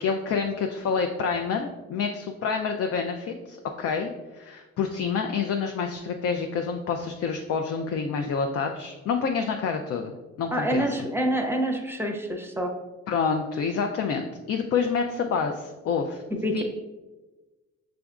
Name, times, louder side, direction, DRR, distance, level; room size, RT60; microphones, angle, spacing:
voice 1, 0.0-10.1 10.4-11.0 13.1-16.2 16.5-16.6, left 5 dB, 50° left, 4 dB, 0.4 m, -28 dB
voice 2, 10.5-12.7 16.4-16.6, right 1 dB, 10° right, 2 dB, 0.6 m, -27 dB
6.1 x 3.4 x 2.4 m, 1.2 s
cardioid pair, 90°, 30 cm